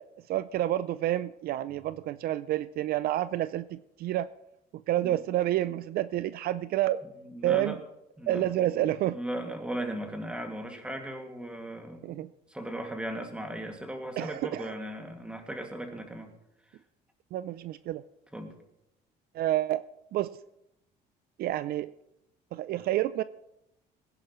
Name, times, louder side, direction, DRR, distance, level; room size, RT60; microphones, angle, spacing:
voice 1, 0.0-4.3 4.9-7.0 7.4-7.8 8.3-9.2 12.0-12.3 14.2-14.7 17.3-18.0 19.3-19.8 20.1-20.3 21.4-21.9 22.5-23.2, right 13 dB, 65° right, 15 dB, 0.4 m, -29 dB
voice 2, 7.2-7.8 8.2-16.3 18.3-18.5, right 1 dB, 5° right, 3 dB, 2.2 m, -37 dB
20.0 x 10.5 x 3.1 m, 0.82 s
cardioid pair, 110°, 17 cm